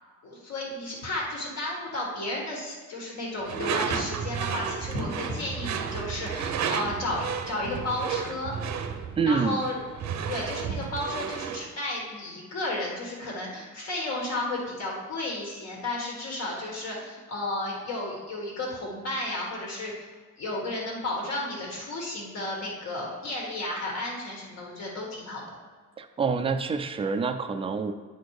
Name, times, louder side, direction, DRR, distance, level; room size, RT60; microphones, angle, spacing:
voice 1, 0.2-8.5 9.2-9.8 10.3-19.9 20.4-25.4, left 1 dB, 60° left, -3 dB, 1.7 m, -33 dB
Door / Screech, 3.5-11.7, right 7 dB, 70° right, 0.7 m, -32 dB
voice 2, 9.2-9.6 26.0-27.9, right 5 dB, 20° right, 8 dB, 0.3 m, -27 dB
9.1 x 4.3 x 4.8 m, 1.4 s
cardioid pair, 180°, 30 cm